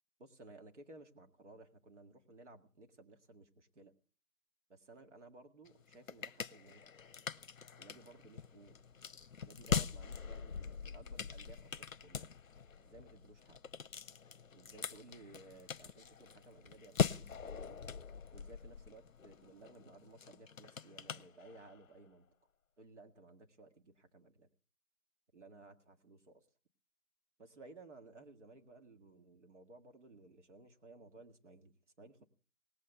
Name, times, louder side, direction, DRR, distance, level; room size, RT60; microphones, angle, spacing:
voice 1, 0.2-3.9 4.7-6.9 7.8-8.8 9.4-12.3 12.8-13.6 14.5-17.8 18.3-22.3 22.8-24.5 25.3-26.5 27.4-32.3, right 2 dB, 50° right, 6 dB, 2.0 m, -58 dB
sound 1, 5.6-21.9, left 6 dB, 60° left, 0.7 m, -42 dB
18.5 x 7.8 x 7.9 m, 0.42 s
figure-of-eight pair, 155°, 44 cm